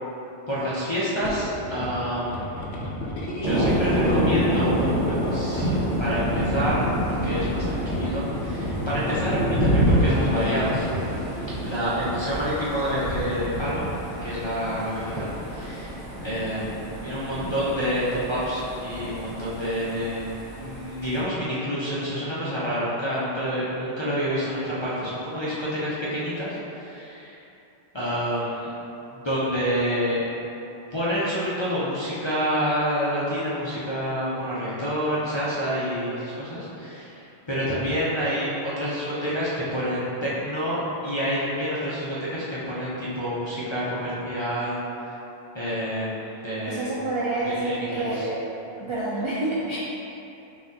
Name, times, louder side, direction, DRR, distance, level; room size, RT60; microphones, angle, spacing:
voice 1, 0.5-2.5 3.4-4.7 5.3-5.7 6.0-6.9 7.2-10.8 11.6-13.9 14.2-16.0 16.2-20.3 20.6-27.4 27.9-28.7 29.1-30.2 30.9-45.1 45.5-46.9 47.4-48.3, equal, 35° left, -10 dB, 0.5 m, -28 dB
sound 1, 1.2-11.3, left 1 dB, 70° left, 0.9 m, -33 dB
Thunder, 3.4-21.2, right 1 dB, 85° right, 1.1 m, -27 dB
voice 2, 46.6-48.3 48.8-49.8, right 2 dB, 45° right, -8 dB, 0.4 m, -28 dB
5.5 x 2.7 x 2.7 m, 2.9 s
omnidirectional pair, 1.2 m